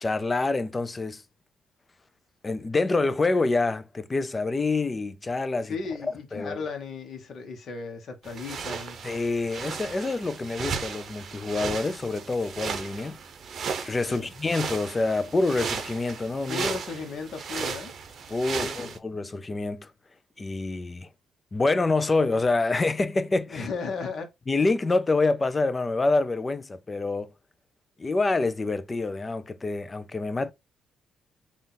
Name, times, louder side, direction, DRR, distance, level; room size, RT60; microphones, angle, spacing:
voice 1, 0.0-1.2 2.4-5.8 6.3-6.6 9.0-13.2 13.8-16.7 18.3-19.9 20.4-21.1 21.5-23.7 24.5-27.3 28.0-30.5, left 3 dB, 25° left, 0.4 m, -26 dB
voice 2, 5.6-9.0 14.0-14.3 16.5-17.9 18.5-18.9 23.5-24.3, left 4 dB, 55° left, 1.1 m, -35 dB
sound 1, 8.2-19.0, right 6 dB, 55° right, 0.7 m, -35 dB
3.8 x 2.4 x 3.8 m
cardioid pair, 110°, 0 cm